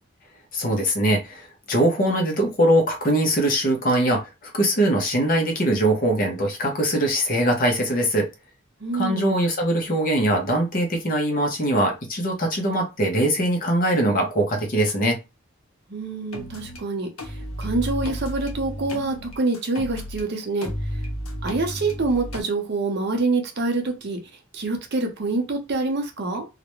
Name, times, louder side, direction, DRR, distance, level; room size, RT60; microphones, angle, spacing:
voice 1, 0.5-8.3 8.9-15.2, right 1 dB, 40° left, 2 dB, 0.6 m, -22 dB
voice 2, 8.8-9.3 15.9-20.7 21.4-24.2 24.5-26.5, right 3 dB, 50° right, 3 dB, 0.6 m, -26 dB
sound 1, 16.3-16.8 17.2-20.2 20.6-22.4, equal, 75° left, 0.7 m, -32 dB
2.4 x 2.1 x 2.9 m, 0.26 s
head